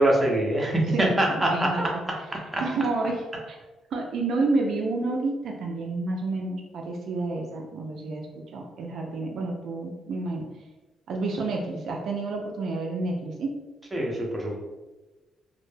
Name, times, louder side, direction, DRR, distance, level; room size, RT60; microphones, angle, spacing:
voice 1, 0.0-2.6 13.9-14.6, right 1 dB, 20° right, -1 dB, 0.6 m, -24 dB
voice 2, 0.9-1.8 2.6-3.6 3.9-8.3 8.5-10.4 11.1-13.5, right 3 dB, 70° right, 0 dB, 0.3 m, -29 dB
2.1 x 2.0 x 3.1 m, 1.2 s
cardioid pair, 90°, 0 cm